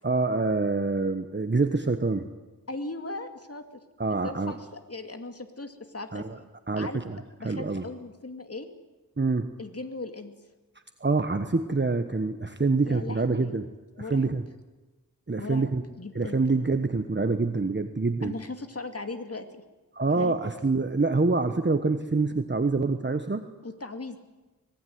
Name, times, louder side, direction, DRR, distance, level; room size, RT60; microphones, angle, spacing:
voice 1, 0.0-2.3 4.0-4.5 6.1-6.4 6.7-7.8 9.2-9.5 11.0-13.7 14.0-14.4 15.3-15.8 16.1-18.3 19.9-23.5, right 3 dB, 30° right, 8 dB, 1.3 m, -26 dB
voice 2, 2.7-3.8 4.2-6.5 6.8-7.0 7.4-8.7 9.6-10.3 12.7-13.6 14.0-14.3 15.4-16.4 18.2-19.6 20.1-20.4 23.6-24.2, left 3 dB, 45° left, 7 dB, 2.6 m, -38 dB
25.5 x 19.5 x 9.5 m, 1.2 s
wide cardioid pair, 85°, 35 cm